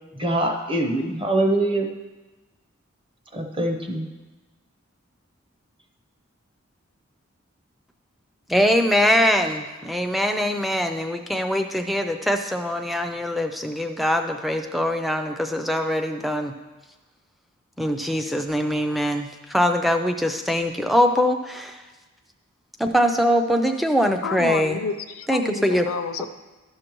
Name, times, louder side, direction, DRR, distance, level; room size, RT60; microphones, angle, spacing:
voice 1, 0.1-1.9 3.3-4.1, right 1 dB, 25° right, 3 dB, 0.7 m, -24 dB
voice 2, 8.5-16.5 17.8-21.8 22.8-24.8 25.3-25.9, equal, ahead, 4 dB, 0.4 m, -22 dB
voice 3, 24.2-26.3, left 5 dB, 85° left, 9 dB, 0.5 m, -29 dB
12.0 x 6.4 x 3.0 m, 1.2 s
head